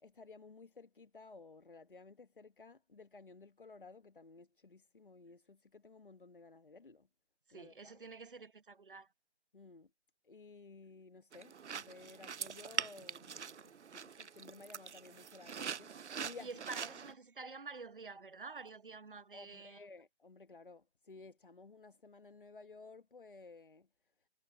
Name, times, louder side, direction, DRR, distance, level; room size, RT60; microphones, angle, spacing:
voice 1, 0.0-7.1 7.5-8.0 9.5-9.9 10.2-16.5 16.8-16.9 19.3-23.9, left 3 dB, 50° left, 1.2 m, -56 dB
voice 2, 7.5-9.1 16.4-19.8, right 4 dB, 50° right, 0.9 m, -49 dB
sound 1, 11.3-17.1, right 7 dB, 75° right, 0.6 m, -43 dB
figure-of-eight pair, 180°, 35 cm